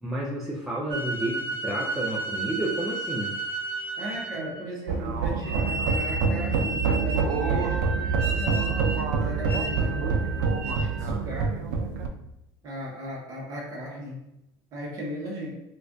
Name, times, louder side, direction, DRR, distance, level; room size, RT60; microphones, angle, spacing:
voice 1, 0.0-3.3, right 1 dB, 5° right, -5 dB, 0.3 m, -31 dB
sound 1, 0.9-4.7 5.4-11.0, right 2 dB, 60° right, 0.8 m, -33 dB
voice 2, 4.0-11.5 12.6-14.2 14.7-15.5, equal, 35° right, -2 dB, 0.9 m, -36 dB
sound 2, 4.9-12.1, right 5 dB, 90° right, 0.4 m, -26 dB
4.2 x 2.3 x 2.5 m, 0.84 s
cardioid pair, 170°, 10 cm